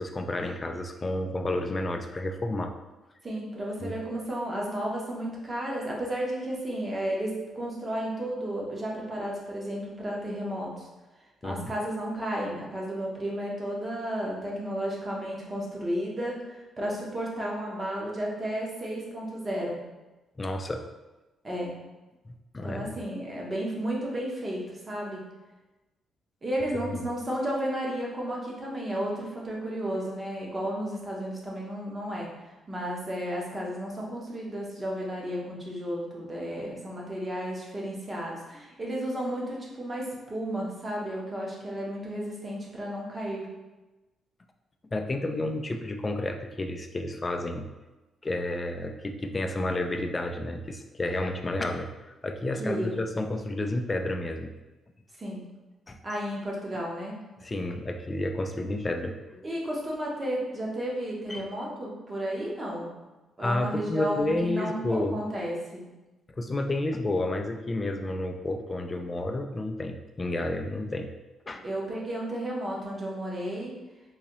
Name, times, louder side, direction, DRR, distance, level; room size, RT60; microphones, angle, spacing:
voice 1, 0.0-2.7 3.8-3.9 11.4-11.7 20.4-20.8 22.3-23.0 26.8-27.0 44.9-47.7 48.2-51.9 52.2-54.5 55.9-56.0 57.4-59.5 61.3-61.4 63.4-65.2 66.4-71.1 71.5-71.6, left 1 dB, 20° left, 4 dB, 0.3 m, -31 dB
voice 2, 3.2-10.9 11.4-19.8 21.4-21.7 22.6-25.2 26.4-32.3 32.7-43.5 52.6-53.0 55.2-55.4 56.0-57.2 59.4-62.9 63.4-65.8 71.6-73.7, equal, 25° right, -3 dB, 0.9 m, -33 dB
3.9 x 2.7 x 2.9 m, 1.1 s
cardioid pair, 130°, 0 cm